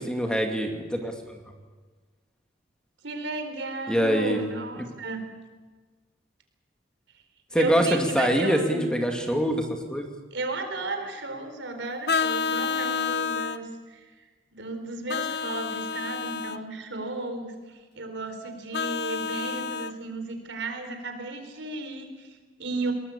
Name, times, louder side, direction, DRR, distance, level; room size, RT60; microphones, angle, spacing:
voice 1, 0.1-1.1 3.9-4.4 7.5-10.1, equal, 5° left, 3 dB, 2.3 m, -24 dB
voice 2, 3.0-5.3 7.5-8.9 10.3-14.2 14.5-22.9, right 2 dB, 75° right, 6 dB, 4.0 m, -34 dB
Vehicle horn car horn honking, 12.1-13.6 15.1-16.6 18.7-19.9, left 6 dB, 55° left, 0.7 m, -29 dB
22.0 x 19.0 x 8.4 m, 1.4 s
head